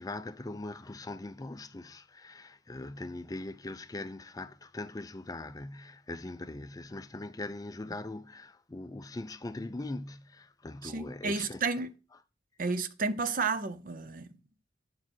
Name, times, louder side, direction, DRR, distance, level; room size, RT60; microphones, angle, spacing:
voice 1, 0.0-11.6, left 2 dB, 20° left, 0.4 m, -41 dB
voice 2, 10.8-11.9 12.6-14.4, right 4 dB, 50° right, 0.7 m, -32 dB
8.8 x 7.1 x 4.4 m
head